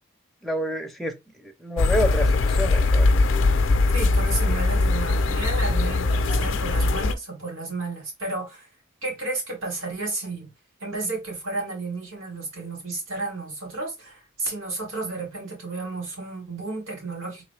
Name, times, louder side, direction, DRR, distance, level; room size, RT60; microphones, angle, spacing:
voice 1, 0.4-1.1 1.4-3.2, equal, ahead, 0.5 m, -28 dB
sound 1, 1.8-7.1, left 3 dB, 70° left, 0.5 m, -21 dB
voice 2, 3.9-8.7 9.0-10.5 10.8-17.4, right 3 dB, 80° right, 2.2 m, -32 dB
3.9 x 3.0 x 3.2 m
head